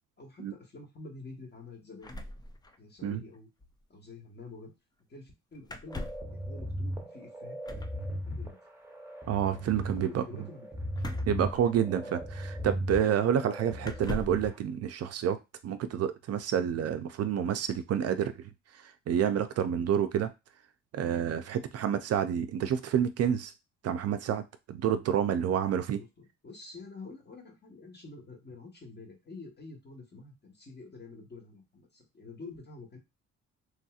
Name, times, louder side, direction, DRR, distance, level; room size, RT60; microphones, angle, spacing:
voice 1, 0.2-2.3 2.8-3.5 3.9-4.7 5.1-7.7 8.2-8.6 9.5-10.7 11.9-12.1 13.8-14.1 26.0-26.1 26.4-33.0, left 3 dB, 35° left, 1 dB, 1.3 m, -48 dB
sound 1, 2.0-3.1 3.3-3.4 3.6-3.8 5.6-6.4 7.6-8.0 11.0-12.1 13.0-13.1 13.8-14.5, left 2 dB, 15° left, 0.4 m, -41 dB
sound 2, 5.9-14.5, equal, 10° right, 0.8 m, -37 dB
voice 2, 9.3-10.2 11.3-15.4 15.6-18.3 19.1-20.3 20.9-23.5 23.8-26.0, right 9 dB, 55° right, 9 dB, 0.4 m, -29 dB
3.1 x 2.7 x 2.4 m, 0.24 s
cardioid pair, 90°, 30 cm